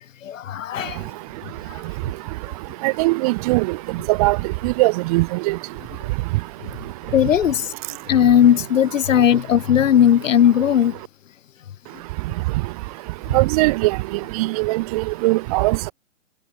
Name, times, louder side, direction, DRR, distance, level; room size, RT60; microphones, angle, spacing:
voice 1, 0.2-1.0 7.1-7.7 8.1-10.9, left 9 dB, 75° left, 0.7 m, -17 dB
voice 2, 2.8-3.8 4.1-4.4 4.6-5.6 13.3-14.0 14.4-15.9, right 22 dB, 30° right, 1.0 m, -20 dB
figure-of-eight pair, 130°, 39 cm